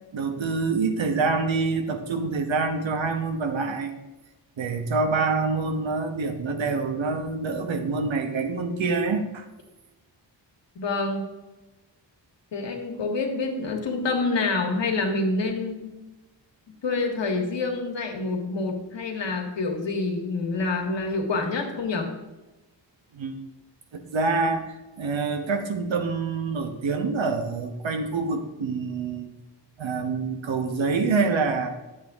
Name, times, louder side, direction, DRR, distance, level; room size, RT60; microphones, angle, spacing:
voice 1, 0.1-3.9 4.6-9.4 23.1-23.4 23.9-29.3 29.8-31.7, right 4 dB, 90° right, 6 dB, 1.2 m, -26 dB
voice 2, 10.7-11.3 12.5-15.9 16.8-22.1, left 3 dB, 70° left, 3 dB, 1.7 m, -27 dB
10.5 x 7.9 x 3.6 m, 1.1 s
wide cardioid pair, 165°, 45 cm